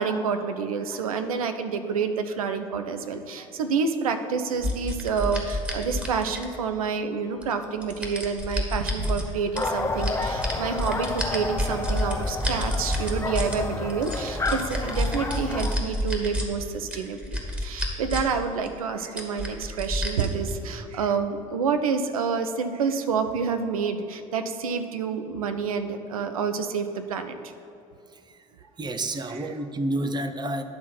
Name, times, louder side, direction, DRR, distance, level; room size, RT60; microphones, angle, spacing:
voice 1, 0.0-27.5 29.3-29.5, right 5 dB, 80° right, 8 dB, 0.5 m, -28 dB
sound 1, 4.6-6.8 7.4-9.3 9.6-13.6 13.9-16.5 16.9-18.4 18.6-18.7 19.2-20.5, equal, 5° right, 1.8 m, -29 dB
sound 2, 9.5-15.8, left 3 dB, 15° left, 0.7 m, -30 dB
voice 2, 28.1-28.4 28.8-30.6, right 1 dB, 25° right, 8 dB, 0.7 m, -30 dB
10.5 x 3.7 x 5.9 m, 2.7 s
figure-of-eight pair, 55°, 18 cm